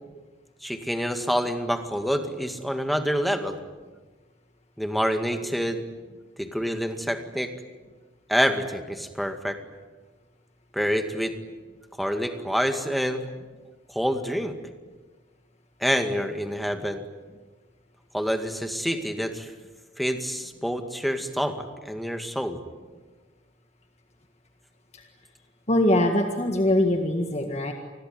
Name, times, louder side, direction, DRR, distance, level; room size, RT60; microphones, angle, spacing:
voice 1, 0.6-3.6 4.8-5.8 6.4-7.5 8.3-9.6 10.7-11.3 12.0-13.3 13.9-14.6 15.8-17.0 18.1-19.5 20.0-22.6, equal, ahead, 6 dB, 2.0 m, -27 dB
voice 2, 25.7-27.7, left 1 dB, 35° left, 4 dB, 1.8 m, -22 dB
28.5 x 21.0 x 9.6 m, 1.3 s
head